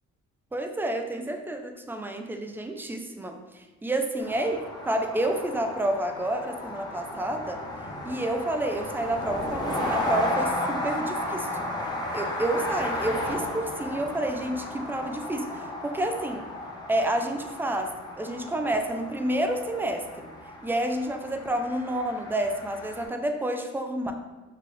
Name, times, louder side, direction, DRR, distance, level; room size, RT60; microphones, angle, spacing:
voice 1, 0.5-4.6 4.9-7.6 8.1-11.7 12.1-16.5 16.9-20.3 20.6-24.1, right 1 dB, 5° right, 5 dB, 0.3 m, -29 dB
sound 1, 4.2-23.0, left 1 dB, 15° left, 0.7 m, -34 dB
3.8 x 2.4 x 3.1 m, 1.2 s
cardioid pair, 90°, 30 cm